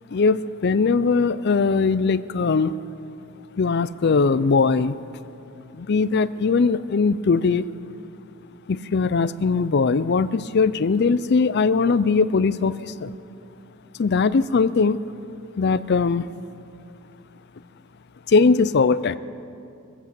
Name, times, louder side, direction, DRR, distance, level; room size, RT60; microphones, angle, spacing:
voice 1, 0.1-2.8 3.6-5.0 5.7-7.6 8.7-13.1 14.0-15.0 15.6-16.3 18.3-19.2, left 4 dB, 50° left, 16 dB, 0.4 m, -20 dB
22.5 x 8.1 x 7.5 m, 2.6 s
head